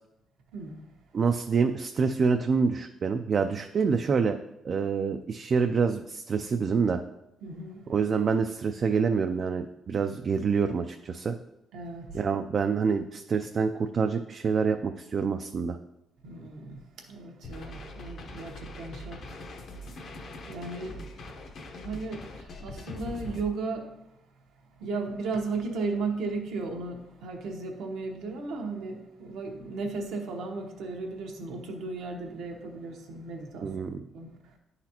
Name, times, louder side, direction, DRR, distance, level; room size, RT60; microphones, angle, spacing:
voice 1, 1.1-4.4 4.6-7.0 7.9-11.4 12.1-15.8 33.6-34.0, right 5 dB, 50° right, 0.3 m, -26 dB
voice 2, 7.4-7.9 11.7-12.2 16.2-19.4 19.8-20.0 20.5-21.0 21.8-24.0 24.8-33.8 34.1-34.5, right 3 dB, 85° right, 1.0 m, -35 dB
sound 1, 17.4-23.4, left 1 dB, 65° left, 0.9 m, -42 dB
10.0 x 4.0 x 2.9 m
cardioid pair, 90°, 0 cm